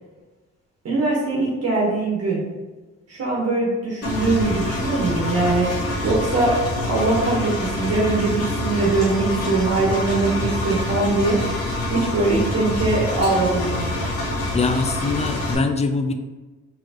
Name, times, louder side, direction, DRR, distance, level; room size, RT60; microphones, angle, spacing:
voice 1, 0.8-2.4 3.1-5.8 6.0-6.5 6.9-11.4 11.9-13.9, right 2 dB, 55° right, -4 dB, 1.2 m, -21 dB
Engine, 4.0-15.5, left 1 dB, 55° left, 1.5 m, -26 dB
voice 2, 14.5-16.1, left 3 dB, 25° left, 8 dB, 0.3 m, -23 dB
4.5 x 3.1 x 2.9 m, 1.2 s
cardioid pair, 90°, 30 cm